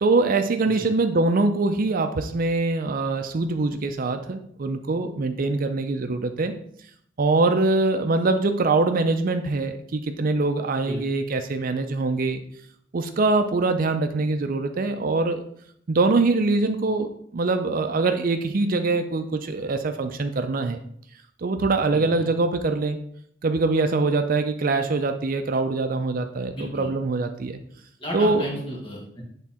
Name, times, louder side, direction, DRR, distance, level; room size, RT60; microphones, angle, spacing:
voice 1, 0.0-6.5 7.2-12.4 12.9-15.4 15.9-20.8 21.4-23.0 23.4-27.6 28.1-28.5, right 3 dB, 50° right, 7 dB, 0.5 m, -23 dB
voice 2, 21.9-22.3 26.5-26.9 28.0-29.2, equal, 30° left, -3 dB, 2.0 m, -34 dB
8.2 x 3.6 x 4.2 m, 0.68 s
head